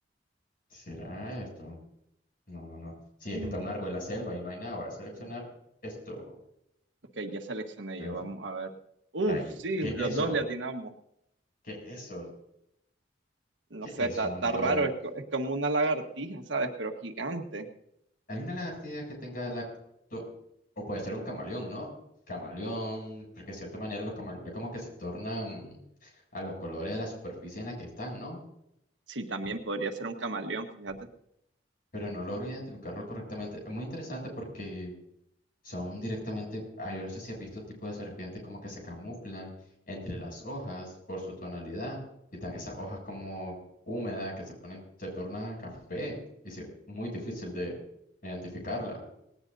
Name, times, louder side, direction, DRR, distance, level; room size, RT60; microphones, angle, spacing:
voice 1, 0.7-1.8 2.5-2.9 3.2-5.4 5.8-6.3 8.0-8.3 9.3-10.4 11.6-12.3 13.8-14.9 18.3-19.6 20.1-20.2 20.8-21.9 22.3-25.8 26.0-28.4 31.9-34.9 35.6-39.5 39.9-42.0 42.4-43.6 43.9-46.2 46.4-47.8 48.2-49.0, equal, 50° left, -1 dB, 7.7 m, -37 dB
voice 2, 3.3-3.7 7.2-8.7 9.1-10.9 13.7-14.9 15.3-17.7 29.1-31.0, right 2 dB, 85° right, 5 dB, 1.4 m, -31 dB
19.0 x 18.0 x 2.7 m, 0.78 s
head